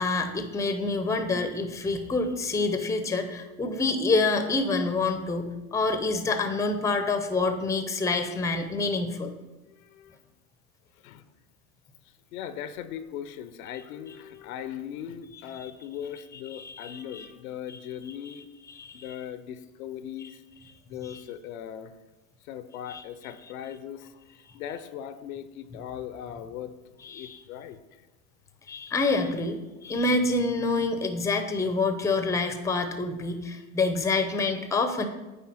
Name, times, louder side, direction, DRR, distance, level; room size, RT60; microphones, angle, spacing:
voice 1, 0.0-9.3 15.6-15.7 16.5-17.3 17.7-17.8 18.7-19.1 21.1-21.2 22.9-23.0 27.0-27.4 28.7-35.0, left 3 dB, 5° left, 7 dB, 0.6 m, -27 dB
voice 2, 9.7-10.1 11.0-11.3 12.3-18.5 18.9-20.4 20.9-21.9 22.4-26.7 27.0-27.8, left 9 dB, 75° left, 12 dB, 0.7 m, -39 dB
9.2 x 3.4 x 5.7 m, 1.1 s
hypercardioid pair, 100°, 43 cm